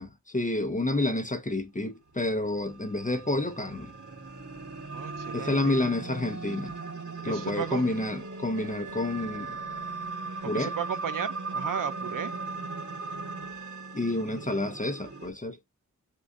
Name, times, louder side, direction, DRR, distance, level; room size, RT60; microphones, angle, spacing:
voice 1, 0.0-3.9 5.3-6.7 7.2-9.6 10.4-10.8 13.9-15.6, left 2 dB, 25° left, 0.8 m, -29 dB
sound 1, 2.3-15.3, right 4 dB, 65° right, 2.0 m, -38 dB
voice 2, 4.9-5.6 7.3-7.8 10.5-12.3, right 8 dB, 90° right, 0.6 m, -34 dB
3.8 x 2.5 x 3.5 m
wide cardioid pair, 65°, 31 cm